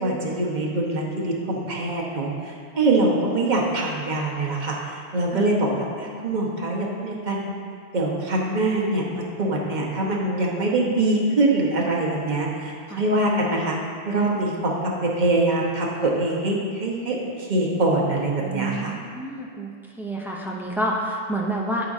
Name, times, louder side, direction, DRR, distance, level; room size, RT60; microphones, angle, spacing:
voice 1, 0.0-7.5 7.9-13.8 14.0-19.0, right 2 dB, 40° right, -3 dB, 1.1 m, -24 dB
voice 2, 18.4-19.7 20.0-21.9, right 1 dB, 5° right, -2 dB, 0.5 m, -28 dB
11.5 x 5.1 x 2.7 m, 2.2 s
omnidirectional pair, 1.2 m